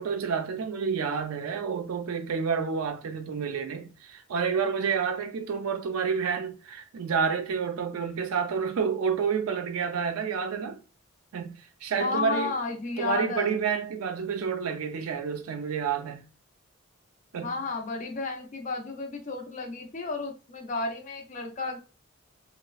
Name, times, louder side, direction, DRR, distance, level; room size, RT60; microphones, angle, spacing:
voice 1, 0.0-10.8 11.3-12.5 13.0-16.2 17.3-17.5, right 6 dB, 85° right, 0.4 m, -29 dB
voice 2, 12.0-13.7 17.4-21.8, left 3 dB, 35° left, 0.4 m, -32 dB
2.9 x 2.0 x 2.3 m
head